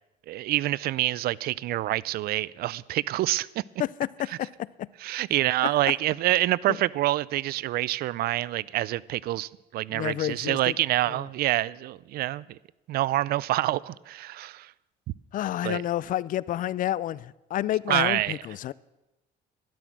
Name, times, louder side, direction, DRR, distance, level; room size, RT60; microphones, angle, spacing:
voice 1, 0.3-3.5 5.0-12.6 12.9-14.7 15.6-15.8 17.9-18.4, right 15 dB, 65° right, 0.4 m, -27 dB
voice 2, 3.8-4.9 6.7-6.8 9.9-10.8 11.1-11.2 15.3-18.7, left 13 dB, 55° left, 0.4 m, -30 dB
12.0 x 12.0 x 6.1 m
cardioid pair, 110°, 17 cm